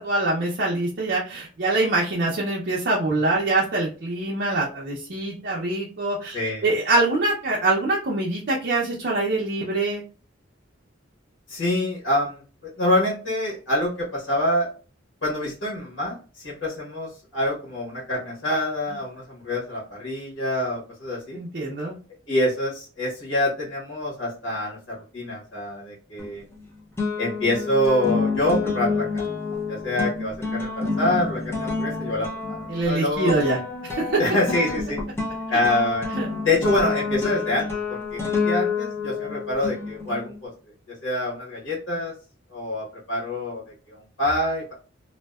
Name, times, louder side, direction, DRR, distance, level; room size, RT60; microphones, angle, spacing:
voice 1, 0.0-10.0 21.3-21.9 32.7-33.6 33.8-34.2 36.2-36.3, right 2 dB, 55° right, -4 dB, 0.5 m, -24 dB
voice 2, 6.3-6.6 11.5-14.7 15.2-21.4 22.3-26.4 27.2-29.2 29.5-32.6 32.8-33.3 34.2-35.0 35.5-36.1 36.4-40.5 41.0-42.1 42.5-44.7, left 1 dB, 75° left, -5 dB, 1.1 m, -26 dB
sound 1, 26.2-26.6 27.0-40.4, left 4 dB, 15° left, 0.5 m, -28 dB
2.6 x 2.2 x 2.2 m, 0.37 s
head